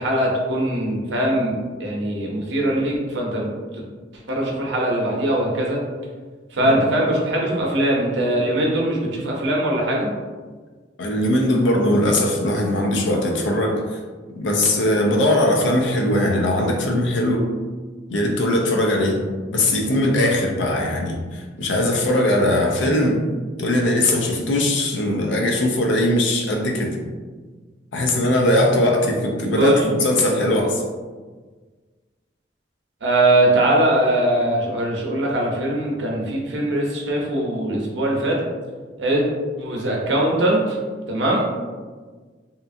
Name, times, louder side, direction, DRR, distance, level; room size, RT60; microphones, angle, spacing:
voice 1, 0.0-3.5 4.3-5.8 6.5-10.1 29.6-29.8 33.0-38.4 39.0-39.3 39.6-40.8 41.1-41.4, right 1 dB, 80° right, -2 dB, 0.7 m, -21 dB
voice 2, 11.0-14.0 14.4-17.5 18.1-19.3 19.5-23.2 23.6-27.0 27.9-30.8, left 1 dB, 85° left, 1 dB, 0.5 m, -20 dB
2.8 x 2.4 x 2.5 m, 1.4 s
head